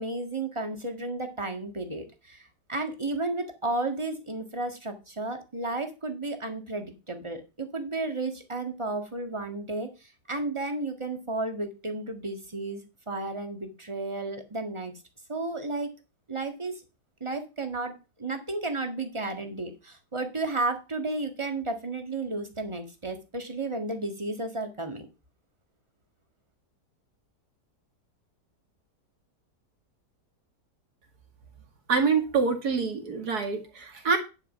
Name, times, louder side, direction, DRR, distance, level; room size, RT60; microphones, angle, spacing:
voice 1, 0.0-9.9 10.3-12.8 13.1-14.9 15.3-15.9 16.3-16.7 17.2-25.1, right 2 dB, 20° right, 5 dB, 1.7 m, -33 dB
voice 2, 31.9-34.2, right 5 dB, 70° right, 4 dB, 2.6 m, -26 dB
10.5 x 5.3 x 5.6 m, 0.29 s
omnidirectional pair, 1.8 m